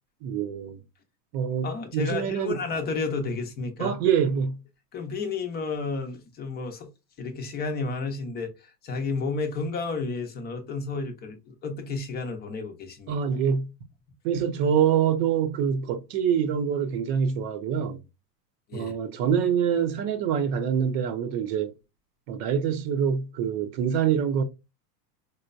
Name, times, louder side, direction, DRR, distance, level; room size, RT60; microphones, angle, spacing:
voice 1, 0.2-0.8 1.3-2.6 3.8-4.6 13.1-13.7 14.2-18.0 18.7-21.7 22.3-24.4, right 8 dB, 35° right, 0.6 m, -25 dB
voice 2, 1.6-4.0 4.9-6.9 7.2-13.2 18.7-18.9, left 4 dB, 20° left, 0.6 m, -32 dB
4.3 x 2.2 x 2.5 m
supercardioid pair, 145°, 48 cm